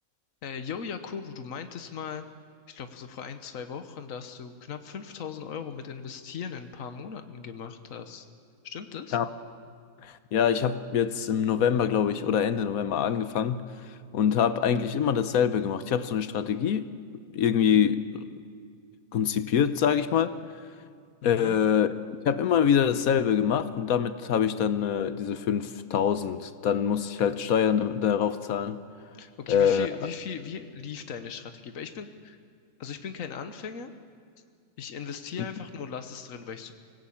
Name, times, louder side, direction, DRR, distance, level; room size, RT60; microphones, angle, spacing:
voice 1, 0.4-2.3 2.7-8.3 8.6-9.2 21.2-21.6 29.2-32.4 32.8-33.9 34.8-36.7, left 6 dB, 70° left, 8 dB, 1.5 m, -38 dB
voice 2, 10.0-16.9 17.3-18.3 19.1-20.4 21.2-21.9 22.2-28.8 29.5-29.9, left 8 dB, 85° left, 12 dB, 1.3 m, -25 dB
24.5 x 17.5 x 8.6 m, 2.2 s
omnidirectional pair, 1.5 m